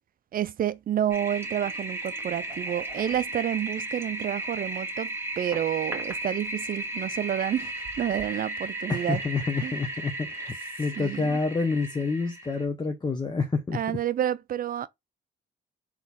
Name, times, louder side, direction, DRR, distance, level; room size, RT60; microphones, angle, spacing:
voice 1, 0.3-9.2 9.6-9.8 11.0-11.4 13.7-14.9, right 10 dB, 45° right, 0.5 m, -29 dB
Toilet flush, 1.1-12.7, right 1 dB, 10° right, 1.8 m, -35 dB
voice 2, 8.9-13.8, left 4 dB, 20° left, 0.8 m, -28 dB
3.9 x 3.0 x 4.0 m
cardioid pair, 90°, 20 cm